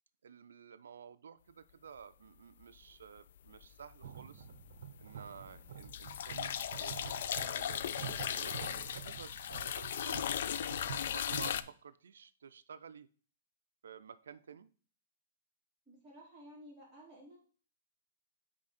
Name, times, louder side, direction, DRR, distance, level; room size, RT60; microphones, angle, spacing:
voice 1, 0.2-4.5 5.0-7.8 8.4-10.3 11.1-13.1 13.8-14.7, right 7 dB, 90° right, 13 dB, 0.4 m, -52 dB
sound 1, 3.5-4.1 4.4-11.6, left 9 dB, 60° left, 0.3 m, -37 dB
sound 2, 4.0-11.7, right 9 dB, 60° right, 0.7 m, -48 dB
voice 2, 15.9-17.4, equal, ahead, -9 dB, 3.5 m, -54 dB
6.2 x 4.3 x 4.2 m, 0.41 s
hypercardioid pair, 160°, 0 cm